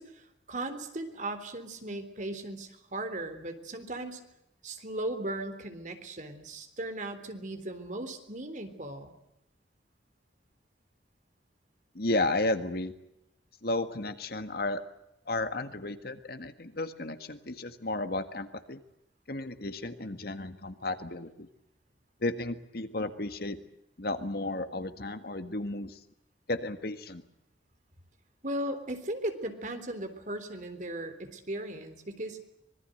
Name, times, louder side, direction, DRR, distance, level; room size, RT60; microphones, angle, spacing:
voice 1, 0.0-4.2 4.6-9.1 28.4-32.4, right 1 dB, 40° right, 8 dB, 3.6 m, -37 dB
voice 2, 12.0-12.9 13.6-14.8 15.3-18.8 19.3-21.5 22.2-23.6 24.0-26.0 26.5-27.2, left 2 dB, 55° left, 9 dB, 1.8 m, -33 dB
25.5 x 21.5 x 8.0 m, 0.83 s
head